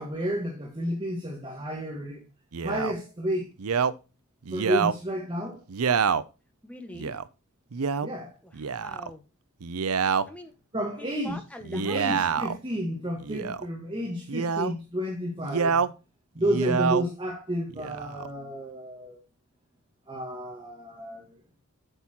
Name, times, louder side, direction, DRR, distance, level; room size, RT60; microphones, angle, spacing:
voice 1, 0.0-2.3 2.6-3.5 4.5-5.6 8.0-8.4 10.7-11.4 11.7-15.8 16.3-19.2 20.1-21.4, equal, 25° right, 1.8 m, -31 dB
Male speech man speaking, 2.5-2.9 3.6-3.9 4.5-5.0 5.7-6.2 7.0-7.2 7.7-8.1 8.5-9.1 9.6-10.2 11.6-12.6 13.2-13.7 14.3-14.7 15.4-15.9 16.4-17.0 17.7-18.3, right 6 dB, 85° right, 0.6 m, -27 dB
voice 2, 6.6-7.1 8.4-9.2 10.3-10.5 11.0-12.1, left 1 dB, 5° left, 1.5 m, -43 dB
8.1 x 7.3 x 4.4 m
head